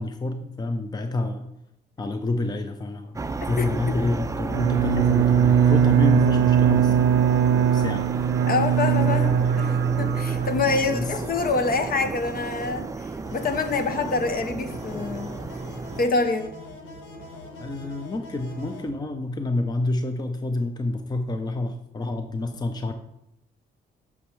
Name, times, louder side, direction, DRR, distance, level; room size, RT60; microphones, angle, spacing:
voice 1, 0.0-1.5 2.0-8.0 9.1-9.8 10.9-11.1 17.6-22.9, left 2 dB, 20° left, 7 dB, 0.6 m, -28 dB
sound 1, 3.1-16.1, right 3 dB, 15° right, 0.4 m, -32 dB
voice 2, 3.6-4.0 8.5-15.3 16.0-16.5, left 3 dB, 45° left, 8 dB, 0.9 m, -26 dB
Bowed string instrument, 4.5-11.1, right 8 dB, 85° right, 0.5 m, -20 dB
sound 2, 13.3-18.9, left 1 dB, 90° left, 1.2 m, -42 dB
8.6 x 6.1 x 3.3 m, 0.79 s
cardioid pair, 90°, 20 cm